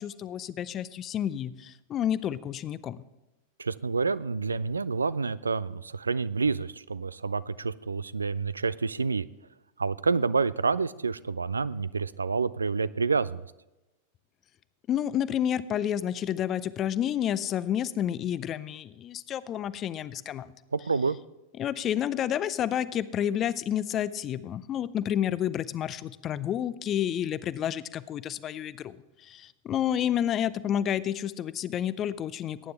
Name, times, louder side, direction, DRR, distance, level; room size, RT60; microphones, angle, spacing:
voice 1, 0.0-3.0 14.9-20.5 21.6-32.7, left 10 dB, 30° left, 17 dB, 0.5 m, -30 dB
voice 2, 3.6-9.3 9.8-13.4 20.7-21.2, right 4 dB, 75° right, 18 dB, 0.3 m, -28 dB
18.5 x 9.5 x 3.3 m, 0.99 s
figure-of-eight pair, 90°, 0 cm